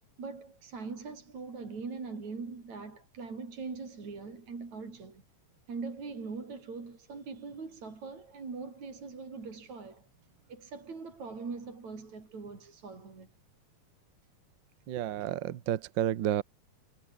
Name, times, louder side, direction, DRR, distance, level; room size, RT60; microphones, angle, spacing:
voice 1, 0.2-5.2 5.7-10.1 10.5-13.3, right 4 dB, 60° right, 6.3 m, -42 dB
voice 2, 14.9-16.4, right 12 dB, 85° right, 1.0 m, -31 dB
omnidirectional pair, 3.7 m